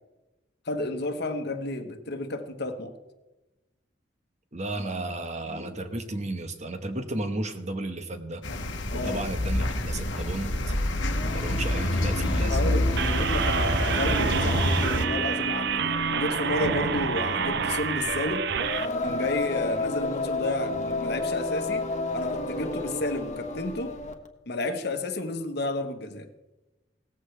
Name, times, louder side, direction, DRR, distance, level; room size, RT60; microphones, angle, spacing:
voice 1, 0.6-2.9 8.9-9.2 12.5-15.7 16.1-18.5 19.0-23.9 24.5-26.3, left 2 dB, 60° left, 7 dB, 1.2 m, -31 dB
voice 2, 4.5-8.4 8.9-10.5 11.3-12.8, right 2 dB, 40° right, 7 dB, 1.2 m, -33 dB
sound 1, 8.4-15.1, left 1 dB, 75° left, 1.3 m, -27 dB
Singing, 11.1-24.3, left 2 dB, 40° left, 1.2 m, -33 dB
sound 2, 13.0-18.9, right 6 dB, 65° right, 0.7 m, -28 dB
17.5 x 14.0 x 3.3 m, 1.1 s
head